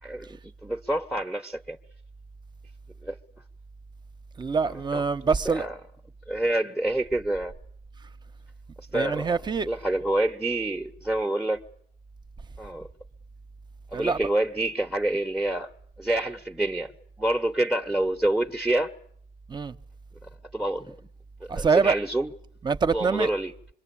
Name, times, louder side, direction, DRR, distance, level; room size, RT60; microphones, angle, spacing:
voice 1, 0.0-1.8 3.0-3.2 4.9-5.0 5.4-5.7 6.3-7.5 8.8-11.6 12.6-12.9 13.9-15.7 16.0-16.9 17.2-18.9 20.2-21.0 21.4-22.3 22.9-23.5, right 1 dB, 5° right, 1.0 m, -27 dB
voice 2, 4.4-5.7 8.9-9.7 13.9-14.2 19.5-19.8 21.5-21.9 22.6-23.3, right 5 dB, 25° right, 1.0 m, -25 dB
26.0 x 23.0 x 8.6 m
cardioid pair, 110°, 17 cm